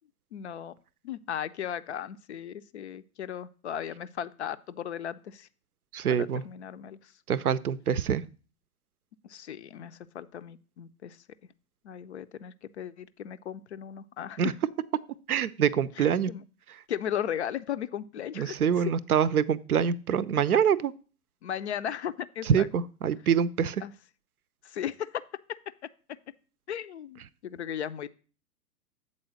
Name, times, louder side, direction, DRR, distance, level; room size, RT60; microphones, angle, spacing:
voice 1, 0.3-0.7 1.0-5.5 6.1-7.1 9.2-11.2 11.8-14.5 16.0-16.4 16.9-18.9 21.4-22.7 23.8-23.9 24.6-25.2 26.7-28.1, left 9 dB, 50° left, 0.4 m, -36 dB
voice 2, 5.9-6.4 7.3-8.2 14.4-14.5 15.3-16.3 18.4-20.9 22.5-23.8, right 8 dB, 75° right, 0.5 m, -25 dB
7.5 x 4.1 x 6.2 m
figure-of-eight pair, 105°, 45 cm